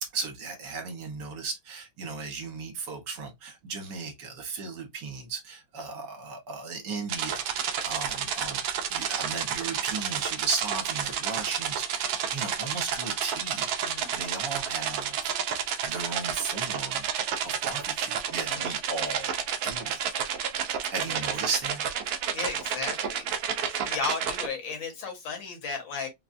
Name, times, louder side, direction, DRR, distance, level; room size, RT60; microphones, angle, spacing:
voice 1, 0.1-15.3 15.8-17.0 17.4-19.4 19.6-20.0 20.9-21.8, right 4 dB, 65° right, 1.4 m, -36 dB
sound 1, 7.1-24.5, right 8 dB, 80° right, 0.8 m, -30 dB
voice 2, 13.8-14.2 18.5-18.7 21.1-21.2 22.3-23.3 23.6-26.1, left 4 dB, 70° left, 1.9 m, -35 dB
4.0 x 2.2 x 2.5 m
omnidirectional pair, 2.2 m